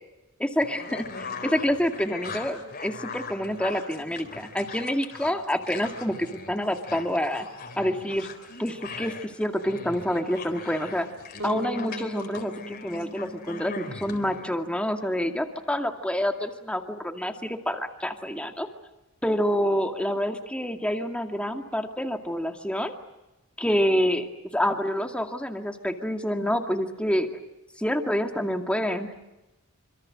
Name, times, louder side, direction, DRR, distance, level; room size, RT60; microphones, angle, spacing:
voice 1, 0.4-7.5 7.8-8.3 8.6-11.1 11.4-18.7 19.2-22.9 23.6-24.3 24.5-27.3 27.8-29.1, equal, 5° left, 4 dB, 2.2 m, -27 dB
sound 1, 0.6-14.4, left 4 dB, 45° left, 3.9 m, -40 dB
Bass guitar, 11.4-15.3, equal, 85° right, 3.7 m, -39 dB
27.0 x 26.0 x 7.7 m, 0.99 s
head